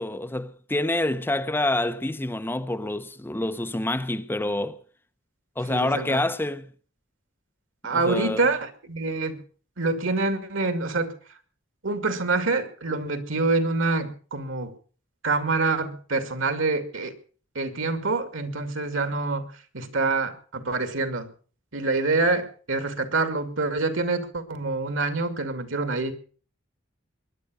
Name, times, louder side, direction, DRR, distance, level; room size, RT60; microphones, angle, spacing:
voice 1, 0.0-4.8 5.6-6.7 7.9-8.5, left 1 dB, 10° left, 0.7 m, -27 dB
voice 2, 5.7-6.2 7.8-9.4 9.8-11.1 11.8-14.7 15.2-17.1 17.5-19.5 19.7-21.3 21.7-26.1, right 3 dB, 85° right, 2.4 m, -26 dB
21.5 x 10.5 x 6.3 m
head